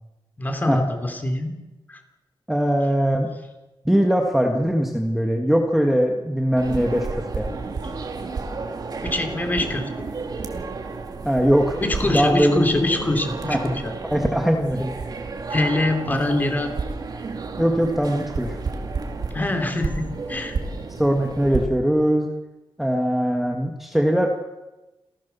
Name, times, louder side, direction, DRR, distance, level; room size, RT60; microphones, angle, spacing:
voice 1, 0.4-1.6 1.9-2.0 9.0-10.1 11.8-13.9 15.5-16.7 19.3-20.6, left 2 dB, 20° left, 6 dB, 3.0 m, -24 dB
voice 2, 2.5-3.3 3.9-7.5 11.2-12.7 13.5-13.6 14.0-14.9 17.6-18.6 21.0-22.3 22.8-24.3, equal, ahead, 2 dB, 1.8 m, -21 dB
sound 1, 6.6-21.6, right 4 dB, 50° right, 2.5 m, -31 dB
28.5 x 15.5 x 7.0 m, 1.1 s
wide cardioid pair, 160°, 9 cm